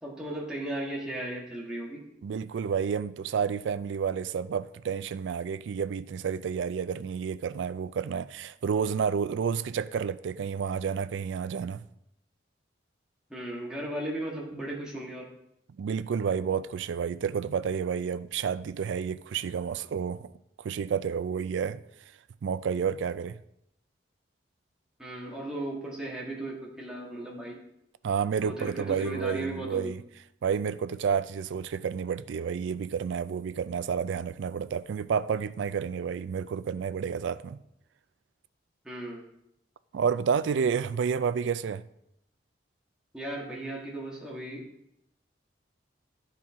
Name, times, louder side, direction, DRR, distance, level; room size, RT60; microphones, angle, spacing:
voice 1, 0.0-2.0 13.3-15.3 25.0-27.6 28.4-29.9 38.8-39.2 43.1-44.6, right 1 dB, 5° right, 1.5 m, -36 dB
voice 2, 2.2-11.8 15.8-20.3 20.6-21.8 22.4-23.4 28.0-30.0 30.4-37.6 39.9-41.8, right 6 dB, 80° right, 0.3 m, -30 dB
10.5 x 4.4 x 3.6 m
head